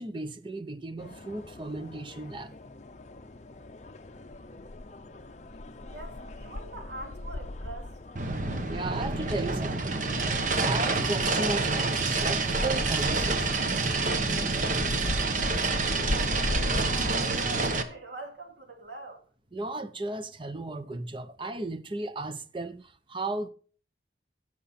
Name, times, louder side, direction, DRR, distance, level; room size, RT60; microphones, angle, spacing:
voice 1, 0.0-2.6 8.7-10.0 10.6-13.9 19.5-23.5, right 2 dB, 25° right, 0.7 m, -35 dB
sound 1, 1.0-17.1, left 2 dB, 40° left, 0.7 m, -38 dB
voice 2, 5.9-8.0 16.1-19.2, right 2 dB, 75° right, 3.3 m, -44 dB
sound 2, 8.2-17.8, right 3 dB, 45° right, 1.1 m, -28 dB
15.5 x 6.5 x 4.2 m
head